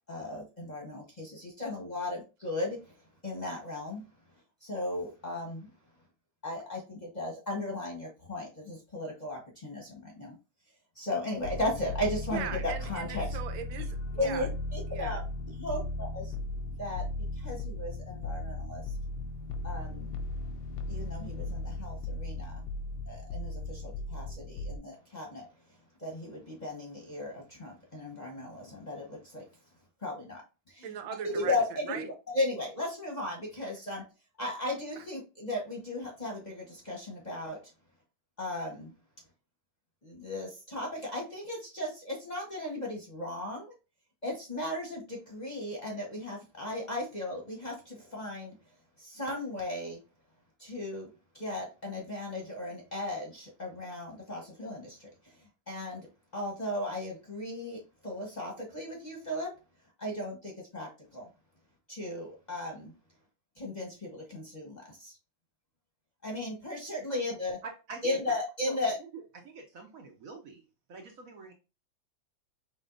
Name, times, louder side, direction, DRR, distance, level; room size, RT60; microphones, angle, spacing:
voice 1, 0.1-4.0 4.6-5.7 6.4-10.3 10.9-13.3 14.2-16.3 16.8-17.0 17.3-19.0 19.6-20.1 20.9-22.6 23.1-25.5 26.0-29.5 30.0-30.9 31.3-34.0 34.4-37.6 38.4-38.9 40.0-43.7 44.2-48.5 49.0-50.0 50.6-56.1 56.3-59.5 60.0-61.3 61.9-62.9 63.6-65.2 66.2-67.6 68.0-69.0, left 1 dB, 30° left, 0.9 m, -36 dB
sound 1, 11.4-24.8, left 2 dB, 90° left, 1.4 m, -37 dB
voice 2, 12.3-14.5 14.9-15.2 30.8-31.5 31.9-32.1 35.0-35.1, right 8 dB, 85° right, 1.4 m, -39 dB
voice 3, 67.6-68.1 68.6-68.8 69.1-71.5, right 3 dB, 60° right, 1.0 m, -45 dB
5.1 x 3.5 x 2.5 m
omnidirectional pair, 2.1 m